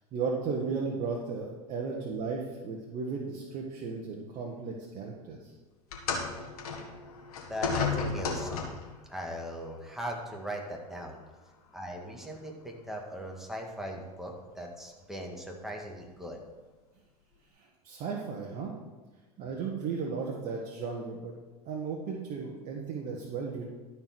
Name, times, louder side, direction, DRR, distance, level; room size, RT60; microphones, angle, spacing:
voice 1, 0.1-5.4 17.8-18.7 19.4-21.3 21.6-23.6, right 5 dB, 45° right, -1 dB, 1.4 m, -35 dB
sound 1, 5.9-9.0 9.9-10.1 11.0-11.1, left 5 dB, 70° left, 1.8 m, -33 dB
voice 2, 7.5-11.2 11.7-16.4, equal, ahead, 0 dB, 2.0 m, -39 dB
13.0 x 4.7 x 6.1 m, 1.2 s
hypercardioid pair, 95°, 20 cm